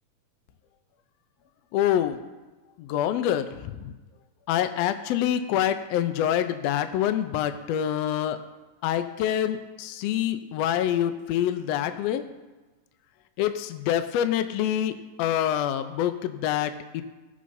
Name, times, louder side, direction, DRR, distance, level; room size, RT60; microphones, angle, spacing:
voice 1, 1.7-2.2 2.8-3.9 4.5-8.4 8.8-12.2 13.4-17.0, left 10 dB, 85° left, 10 dB, 1.4 m, -26 dB
19.5 x 6.6 x 2.6 m, 1.2 s
omnidirectional pair, 3.6 m